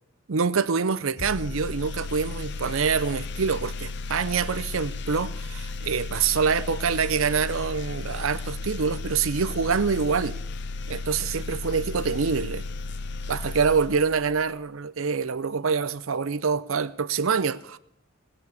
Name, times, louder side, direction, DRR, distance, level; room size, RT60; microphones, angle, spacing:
voice 1, 0.3-10.4 10.9-12.6 13.3-17.8, right 5 dB, 75° right, 0.6 m, -26 dB
sound 1, 1.2-14.6, left 3 dB, 55° left, 0.7 m, -34 dB
18.0 x 6.9 x 8.4 m
head